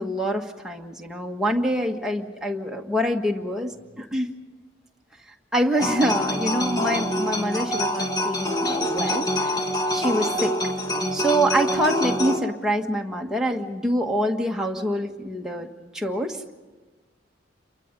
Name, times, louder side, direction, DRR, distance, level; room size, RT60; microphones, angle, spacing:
voice 1, 0.0-3.7 4.0-4.3 5.5-9.5 9.9-10.5 11.1-15.7 15.9-16.5, equal, 5° right, 0 dB, 1.6 m, -25 dB
sound 1, 5.8-12.4, equal, 20° left, 1.5 m, -25 dB
28.5 x 23.0 x 5.4 m, 1.3 s
head